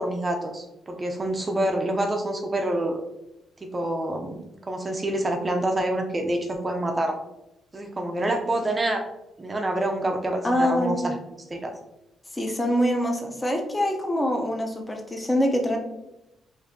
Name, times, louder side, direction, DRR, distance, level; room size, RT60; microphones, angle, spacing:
voice 1, 0.0-3.0 3.6-4.4 4.7-7.1 7.7-9.0 9.4-11.2 11.5-11.7, right 1 dB, 25° right, 3 dB, 0.5 m, -27 dB
voice 2, 10.4-11.1 12.3-15.8, equal, 20° left, 2 dB, 0.7 m, -24 dB
4.1 x 2.7 x 2.7 m, 0.90 s
cardioid pair, 85°, 0 cm